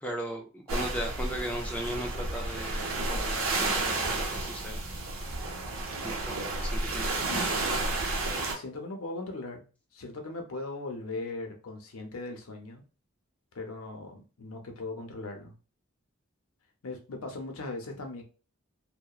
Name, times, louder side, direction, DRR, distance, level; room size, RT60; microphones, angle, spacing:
voice 1, 0.0-4.8 6.0-6.3 6.6-7.7, equal, 5° left, 0 dB, 0.3 m, -37 dB
Gentle Waves - Quiet Beach, 0.7-8.5, right 2 dB, 80° right, 0.7 m, -31 dB
voice 2, 8.5-9.7 9.9-12.8 13.5-15.5 16.8-18.2, left 2 dB, 90° left, 3 dB, 0.6 m, -39 dB
2.8 x 2.1 x 2.3 m, 0.34 s
head